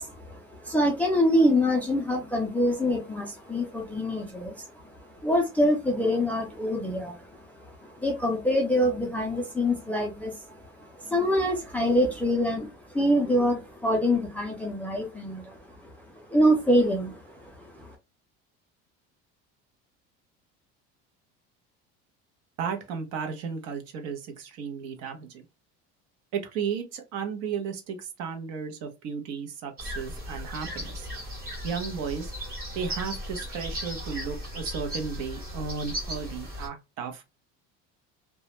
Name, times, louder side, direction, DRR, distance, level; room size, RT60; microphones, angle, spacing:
voice 1, 0.0-4.9 5.2-15.6 15.8-17.4 17.7-17.9, equal, 5° left, 0.3 m, -25 dB
voice 2, 22.6-25.4 26.3-31.1 31.6-32.3 32.7-37.2, right 6 dB, 60° right, 0.7 m, -34 dB
sound 1, 29.8-36.7, equal, 30° right, 1.1 m, -36 dB
2.3 x 2.1 x 2.9 m
cardioid pair, 160°, 29 cm